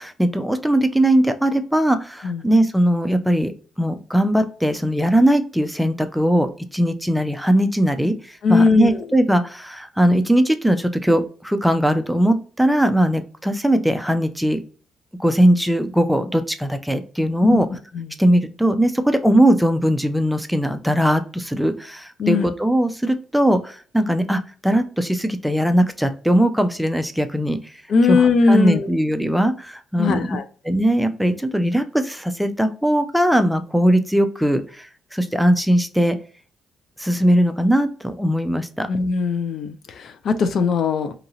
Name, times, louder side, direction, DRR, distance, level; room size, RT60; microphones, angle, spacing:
voice 1, 0.0-3.5 3.8-14.6 15.2-17.7 18.2-27.6 28.1-30.4 30.6-34.9 35.1-36.2 37.0-38.9, right 1 dB, ahead, 9 dB, 0.4 m, -19 dB
voice 2, 8.4-9.0 17.4-17.6 17.9-18.1 22.2-22.5 27.9-28.9 30.0-30.5 38.9-41.1, left 4 dB, 60° left, 10 dB, 0.4 m, -19 dB
2.8 x 2.6 x 2.7 m, 0.40 s
cardioid pair, 90°, 0 cm